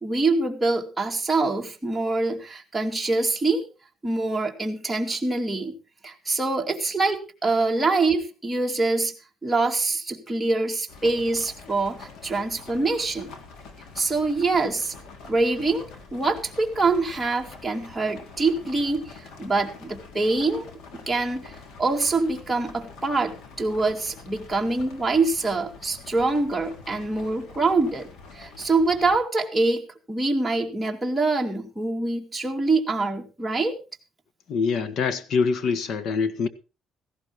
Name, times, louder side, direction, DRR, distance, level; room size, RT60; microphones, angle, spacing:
voice 1, 0.0-3.7 4.0-5.8 6.0-9.1 9.4-13.3 14.0-14.9 15.2-20.7 21.1-28.1 28.3-33.8, right 3 dB, 10° right, 2.4 m, -25 dB
sound 1, 10.9-29.2, left 4 dB, 80° left, 3.7 m, -45 dB
voice 2, 34.5-36.5, left 5 dB, 60° left, 1.5 m, -24 dB
17.0 x 15.0 x 3.1 m
cardioid pair, 140°, 0 cm